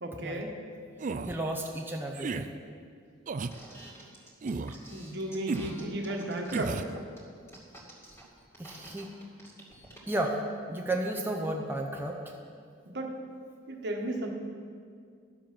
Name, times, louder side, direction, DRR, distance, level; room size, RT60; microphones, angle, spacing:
voice 1, 0.0-0.5 4.9-6.8 12.8-13.1 13.7-14.3, right 1 dB, 60° right, 1 dB, 1.3 m, -34 dB
sound 1, 1.0-1.4 2.1-2.5 3.3-3.6 4.4-4.8 5.5-5.7 6.5-6.9, right 4 dB, 40° right, 0.4 m, -33 dB
voice 2, 1.3-2.6 4.9-5.3 8.6-9.1 10.1-10.4 10.7-12.4, right 1 dB, 10° right, 0 dB, 0.7 m, -33 dB
sound 2, 3.5-10.2, right 1 dB, 15° left, 2.3 m, -50 dB
11.5 x 7.4 x 6.0 m, 2.2 s
head